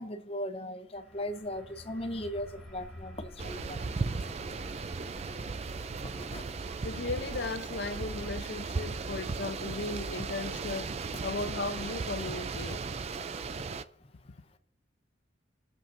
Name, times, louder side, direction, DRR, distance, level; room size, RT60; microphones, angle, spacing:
voice 1, 0.0-5.7 6.0-6.5 14.0-14.6, left 1 dB, 30° left, 0.8 m, -40 dB
sound 1, 0.9-12.4, left 1 dB, ahead, 1.7 m, -52 dB
sound 2, 3.4-13.8, right 4 dB, 35° right, 0.4 m, -36 dB
voice 2, 6.8-12.8, left 3 dB, 65° left, 0.6 m, -36 dB
22.0 x 7.3 x 2.6 m
head